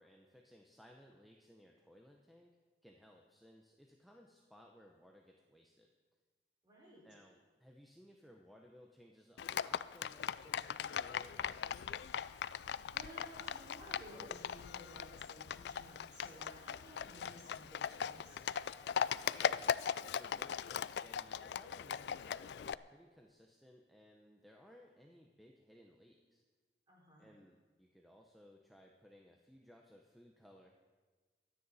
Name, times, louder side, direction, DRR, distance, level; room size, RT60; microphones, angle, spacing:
voice 1, 0.0-2.6 2.8-5.9 7.0-12.1 19.3-26.4 27.2-30.7, equal, ahead, 0 dB, 0.8 m, -61 dB
voice 2, 6.6-7.0 12.9-18.8 26.9-27.3, equal, 25° right, -5 dB, 5.0 m, -55 dB
Livestock farm animals working animals, 9.4-22.7, left 8 dB, 65° left, 0.3 m, -39 dB
24.0 x 9.7 x 4.2 m, 1.4 s
head